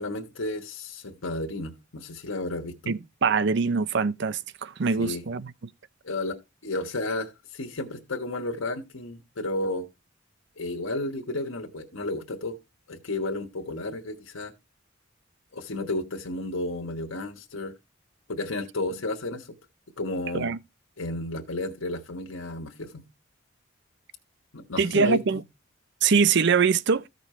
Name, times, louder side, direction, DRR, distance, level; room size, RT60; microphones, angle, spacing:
voice 1, 0.0-3.0 5.0-5.2 6.0-9.9 10.6-12.6 12.9-14.5 15.5-17.7 18.3-19.5 20.0-20.5 21.0-23.0 24.5-25.4, left 2 dB, 80° left, 1.3 m, -32 dB
voice 2, 2.9-5.5 20.3-20.6 24.8-25.4 26.0-27.1, right 5 dB, 55° right, 0.5 m, -23 dB
14.5 x 5.3 x 3.1 m
head